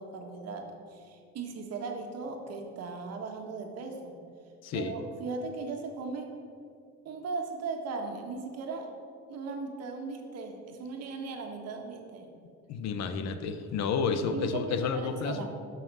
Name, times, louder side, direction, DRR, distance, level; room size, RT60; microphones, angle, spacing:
voice 1, 0.0-4.1 4.7-6.3 7.0-8.9 9.3-12.3 14.1-15.5, right 4 dB, 60° right, 3 dB, 1.5 m, -38 dB
voice 2, 4.6-4.9 12.7-15.5, left 5 dB, 65° left, 8 dB, 0.9 m, -31 dB
13.0 x 5.8 x 6.1 m, 2.4 s
cardioid pair, 160°, 29 cm